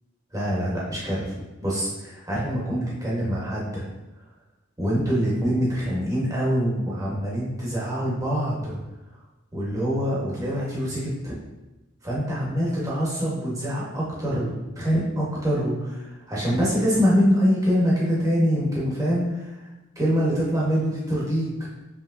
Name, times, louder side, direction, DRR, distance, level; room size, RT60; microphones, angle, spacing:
voice 1, 0.3-3.9 4.8-8.8 9.5-11.4 12.0-19.6 19.9-21.5, equal, 15° right, -6 dB, 1.3 m, -24 dB
5.6 x 3.4 x 2.6 m, 1.1 s
head